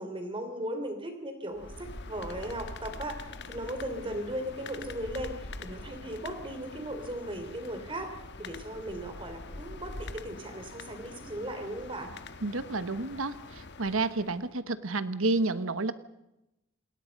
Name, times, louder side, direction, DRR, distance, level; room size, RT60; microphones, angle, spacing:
voice 1, 0.0-12.1, right 1 dB, 25° right, 6 dB, 3.3 m, -37 dB
sound 1, 1.5-14.5, left 3 dB, 55° left, 1.5 m, -44 dB
voice 2, 12.4-15.9, right 3 dB, 75° right, 12 dB, 1.3 m, -30 dB
28.5 x 20.5 x 5.4 m, 0.90 s
head